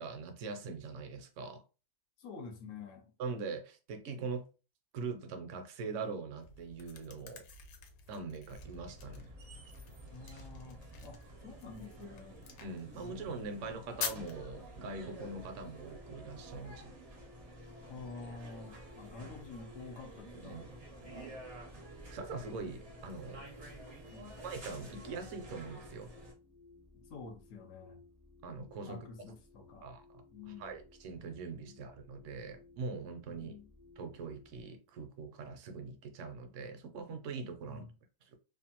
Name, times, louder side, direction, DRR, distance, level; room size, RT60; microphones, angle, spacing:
voice 1, 0.0-1.6 3.2-4.5 4.9-7.4 8.1-9.3 12.6-17.0 20.3-20.7 22.1-23.5 24.4-26.1 28.4-29.1 29.8-30.2 30.6-33.5 34.0-37.9, right 4 dB, 65° right, 0.8 m, -42 dB
voice 2, 2.2-3.1 10.1-12.4 13.0-13.8 17.8-20.7 24.1-24.4 26.9-28.0 28.8-29.9 30.3-30.8 31.7-31.8 33.3-33.7 37.6-37.9, left 4 dB, 70° left, 1.0 m, -49 dB
sound 1, 6.4-14.8, left 6 dB, 85° left, 1.1 m, -47 dB
sound 2, 8.5-26.3, right 1 dB, 45° right, 0.5 m, -51 dB
sound 3, 14.9-34.6, left 3 dB, 25° left, 0.3 m, -60 dB
2.6 x 2.2 x 2.8 m
omnidirectional pair, 1.5 m